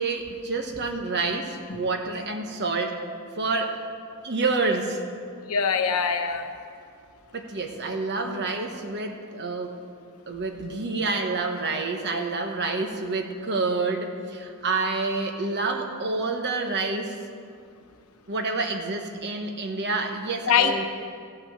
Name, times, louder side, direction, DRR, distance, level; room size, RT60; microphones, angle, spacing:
voice 1, 0.0-3.0 3.4-3.8 4.2-5.0 7.3-9.8 10.3-17.2 18.3-20.8, right 3 dB, 50° right, 4 dB, 1.2 m, -28 dB
voice 2, 5.5-6.4 20.5-20.8, left 6 dB, 75° left, 6 dB, 1.0 m, -23 dB
15.5 x 5.9 x 7.3 m, 2.3 s
head